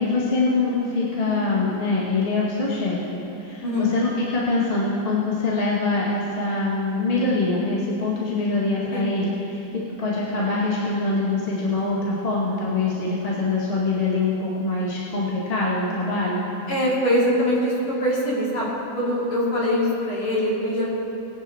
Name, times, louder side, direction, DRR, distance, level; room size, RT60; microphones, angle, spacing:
voice 1, 0.0-9.7 10.0-16.4, left 3 dB, 20° left, -7 dB, 1.8 m, -24 dB
voice 2, 16.7-20.9, left 1 dB, 45° left, -7 dB, 3.4 m, -23 dB
20.5 x 11.0 x 2.9 m, 2.9 s
omnidirectional pair, 3.4 m